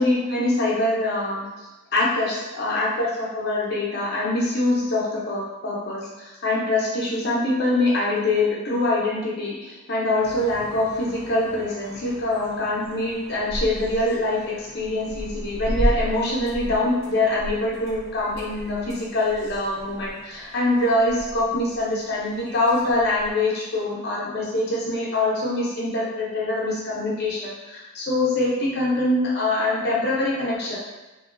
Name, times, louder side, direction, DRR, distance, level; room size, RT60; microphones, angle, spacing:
voice 1, 0.0-30.8, left 2 dB, 50° left, -5 dB, 0.6 m, -24 dB
sound 1, 10.2-23.3, equal, 70° right, 1.0 m, -34 dB
2.6 x 2.2 x 2.5 m, 1.1 s
head